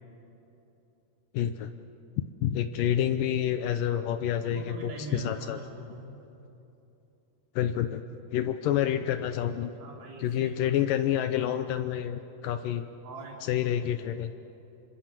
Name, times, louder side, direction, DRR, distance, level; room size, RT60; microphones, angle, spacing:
voice 1, 1.3-1.7 2.4-5.6 7.6-8.0 8.3-9.7 10.2-12.9 13.4-14.3, left 10 dB, 75° left, 10 dB, 2.1 m, -28 dB
voice 2, 4.4-6.1 9.8-10.9 13.0-13.4, right 2 dB, 45° right, -2 dB, 4.6 m, -42 dB
26.5 x 25.5 x 7.5 m, 2.9 s
omnidirectional pair, 4.5 m